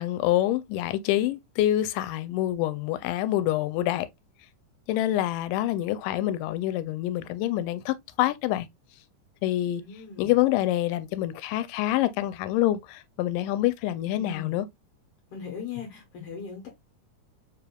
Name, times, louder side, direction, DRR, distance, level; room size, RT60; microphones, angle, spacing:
voice 1, 0.0-4.1 4.9-8.7 9.4-9.8 10.2-14.7, left 14 dB, 85° left, 2.1 m, -26 dB
voice 2, 9.8-10.3 14.1-14.6 15.3-16.7, left 6 dB, 60° left, 1.6 m, -39 dB
5.1 x 3.4 x 2.2 m
omnidirectional pair, 3.8 m